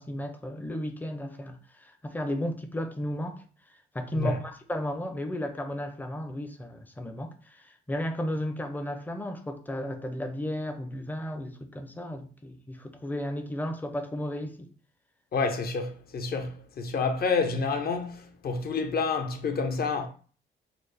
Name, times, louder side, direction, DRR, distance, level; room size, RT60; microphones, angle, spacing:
voice 1, 0.0-3.4 3.9-14.7, left 1 dB, 10° left, 0.5 m, -34 dB
voice 2, 15.3-20.1, left 4 dB, 50° left, 0.7 m, -29 dB
4.0 x 2.0 x 3.3 m
cardioid pair, 90°, 20 cm